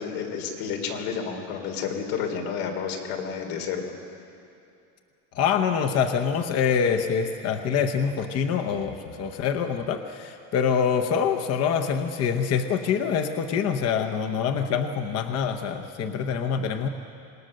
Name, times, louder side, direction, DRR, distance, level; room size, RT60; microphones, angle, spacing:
voice 1, 0.0-3.8, left 6 dB, 90° left, 3 dB, 3.7 m, -30 dB
voice 2, 5.3-16.9, left 7 dB, 35° left, 5 dB, 0.9 m, -25 dB
27.0 x 19.5 x 6.5 m, 2.6 s
cardioid pair, 175°, 41 cm